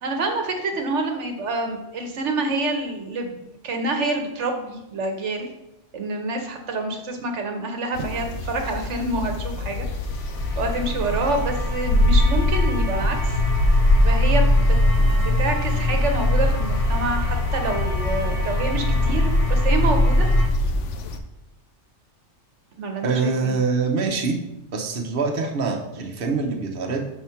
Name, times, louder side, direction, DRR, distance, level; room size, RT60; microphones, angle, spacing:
voice 1, 0.0-5.5 5.9-9.9 10.6-13.4 14.0-20.3 22.8-23.6, right 2 dB, 75° right, 4 dB, 1.2 m, -27 dB
sound 1, 7.9-21.2, left 2 dB, 80° left, 1.0 m, -25 dB
sound 2, 9.9-20.5, left 1 dB, 30° left, 0.9 m, -22 dB
voice 2, 23.0-24.4 24.7-27.0, right 4 dB, 55° right, 1 dB, 1.1 m, -24 dB
6.0 x 4.2 x 5.7 m, 0.92 s
omnidirectional pair, 1.2 m